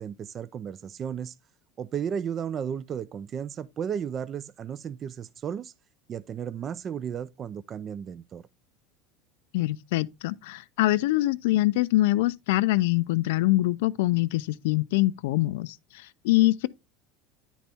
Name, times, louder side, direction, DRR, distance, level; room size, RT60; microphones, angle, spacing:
voice 1, 0.0-1.3 1.8-5.7 6.1-8.4, right 8 dB, 30° right, 0.3 m, -34 dB
voice 2, 9.5-16.7, left 17 dB, 80° left, 0.4 m, -24 dB
10.0 x 4.1 x 3.4 m
supercardioid pair, 140°, 0 cm